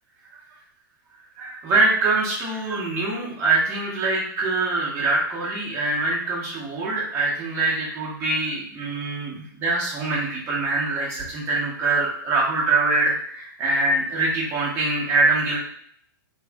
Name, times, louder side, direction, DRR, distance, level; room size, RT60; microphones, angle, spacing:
voice 1, 1.4-15.6, right 3 dB, 20° right, -5 dB, 1.2 m, -24 dB
3.2 x 3.2 x 2.3 m, 0.63 s
hypercardioid pair, 155°, 12 cm